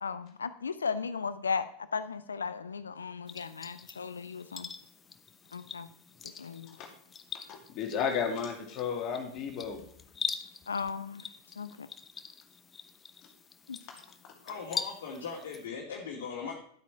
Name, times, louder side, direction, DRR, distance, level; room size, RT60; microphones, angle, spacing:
voice 1, 0.0-4.7 5.5-5.9 6.2-6.8 10.7-11.3 11.6-11.9 13.7-13.8, left 5 dB, 75° left, 14 dB, 0.8 m, -36 dB
sound 1, 3.3-15.7, left 6 dB, 20° left, 0.8 m, -43 dB
voice 2, 7.5-9.8, left 7 dB, 40° left, 2 dB, 2.5 m, -33 dB
voice 3, 14.4-16.5, left 5 dB, 55° left, -2 dB, 2.4 m, -39 dB
12.0 x 8.4 x 4.7 m, 0.65 s
figure-of-eight pair, 90°, 0 cm